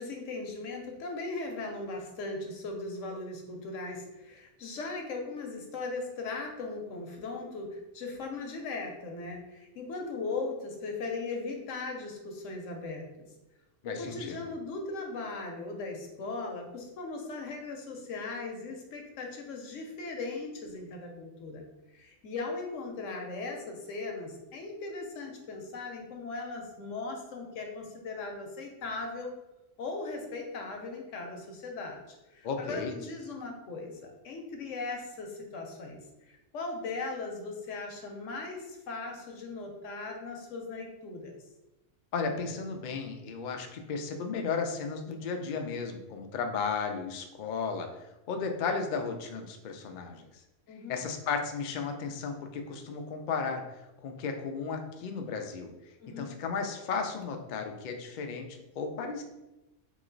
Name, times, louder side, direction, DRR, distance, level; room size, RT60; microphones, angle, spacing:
voice 1, 0.0-13.3 13.8-21.6 21.9-29.3 29.8-36.0 36.3-41.4 50.7-51.0 56.0-56.3, left 3 dB, 80° left, 2 dB, 1.1 m, -38 dB
voice 2, 13.8-14.5 32.4-32.9 42.1-50.4 50.9-53.6 54.0-55.7 56.2-59.2, left 5 dB, 65° left, 4 dB, 0.4 m, -34 dB
3.1 x 3.0 x 3.8 m, 0.98 s
omnidirectional pair, 1.3 m